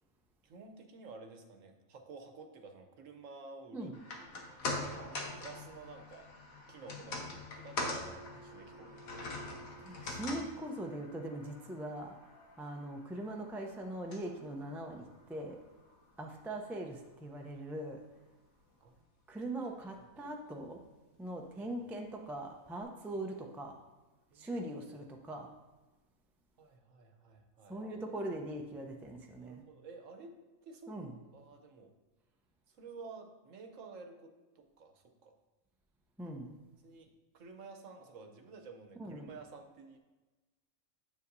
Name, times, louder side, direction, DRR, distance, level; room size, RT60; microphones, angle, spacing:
voice 1, 0.4-6.3 6.7-9.4 18.8-19.1 20.0-20.1 24.3-24.7 26.6-27.8 29.4-30.3 30.6-30.9 31.3-31.9 32.7-35.3 36.8-40.0, right 4 dB, 70° right, 5 dB, 1.2 m, -52 dB
sound 1, 3.9-16.3 16.6-16.7, left 2 dB, 90° left, 1.5 m, -44 dB
voice 2, 9.8-12.2 12.6-15.6 16.2-18.0 19.3-20.8 21.2-23.8 24.3-25.5 27.7-29.6 30.9-31.1 36.2-36.6 39.0-39.3, right 1 dB, 5° right, 2 dB, 0.3 m, -41 dB
9.6 x 7.2 x 2.6 m, 1.2 s
omnidirectional pair, 1.4 m